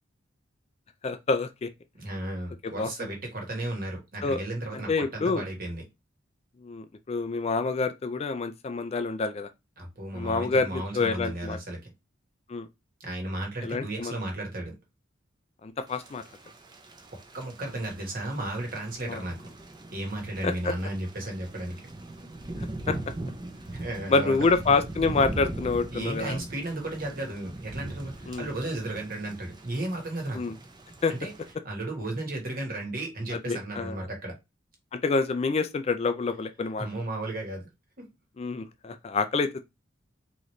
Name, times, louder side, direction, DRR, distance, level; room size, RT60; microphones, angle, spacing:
voice 1, 1.0-1.7 2.6-2.9 4.2-4.4 4.9-5.4 6.6-9.5 10.1-11.6 12.5-12.7 13.6-14.1 15.6-16.2 19.0-19.2 20.4-20.7 22.6-23.0 24.1-26.4 28.3-28.5 30.3-30.5 31.0-31.1 33.3-34.0 34.9-36.9 38.4-39.6, left 4 dB, 30° left, 0.3 m, -27 dB
voice 2, 2.0-5.8 9.8-11.9 13.0-14.7 17.3-19.4 19.9-21.8 23.7-24.4 25.9-30.4 31.1-31.3 31.6-34.4 36.8-37.7 38.0-38.1, right 1 dB, 45° right, 1.4 m, -34 dB
Thunder / Rain, 15.9-31.5, right 1 dB, 20° right, 0.6 m, -40 dB
3.9 x 3.0 x 3.1 m
head